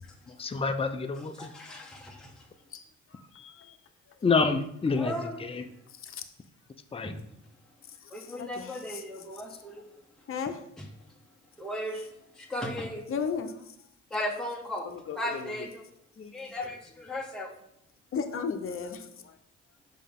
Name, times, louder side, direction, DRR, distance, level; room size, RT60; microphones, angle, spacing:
voice 1, 0.4-1.5 4.2-5.1 6.9-7.1 16.2-16.3, left 4 dB, 20° left, 6 dB, 0.6 m, -27 dB
voice 2, 1.1-2.5 4.9-5.4 7.0-7.2 8.1-10.0 10.8-10.9 11.6-12.1 12.3-13.0 14.1-15.8 16.3-17.5, left 1 dB, ahead, -1 dB, 1.1 m, -36 dB
voice 3, 3.1-3.8 6.0-6.2 8.4-8.7 10.3-10.6 13.1-13.5 14.8-15.5 18.1-19.1, left 6 dB, 45° left, 5 dB, 0.8 m, -34 dB
5.5 x 5.2 x 3.7 m, 0.74 s
supercardioid pair, 65°, 30 cm